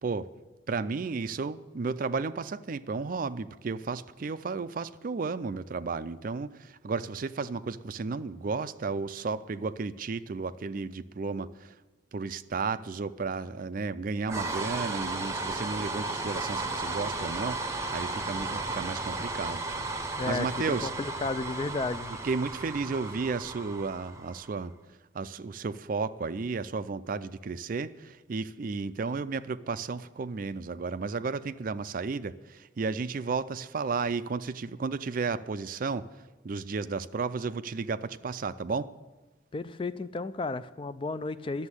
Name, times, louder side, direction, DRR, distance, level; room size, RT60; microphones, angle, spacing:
voice 1, 0.7-11.7 12.1-19.6 20.3-20.9 22.2-24.7 25.1-36.1 36.4-38.9, right 4 dB, 45° right, 14 dB, 0.4 m, -33 dB
sound 1, 14.3-24.5, right 3 dB, 15° right, 0.7 m, -34 dB
voice 2, 20.2-22.1 39.5-41.7, left 3 dB, 25° left, 14 dB, 0.3 m, -33 dB
11.5 x 7.2 x 9.8 m, 1.2 s
head